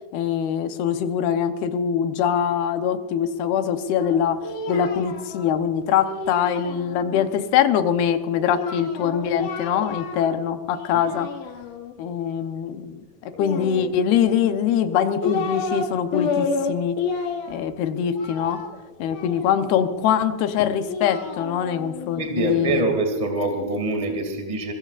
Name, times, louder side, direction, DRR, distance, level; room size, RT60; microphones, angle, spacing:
voice 1, 0.1-4.4 4.7-11.3 12.0-17.0 17.5-18.6 19.0-22.9, left 8 dB, 85° left, 7 dB, 2.9 m, -23 dB
Singing, 4.0-7.2 8.4-10.4 10.7-11.9 13.3-14.3 14.9-15.9 16.1-19.8 20.6-22.8, left 4 dB, 60° left, 3.2 m, -31 dB
voice 2, 22.2-24.7, right 2 dB, 15° right, 3 dB, 1.5 m, -24 dB
24.5 x 21.5 x 2.5 m, 1.2 s
omnidirectional pair, 4.4 m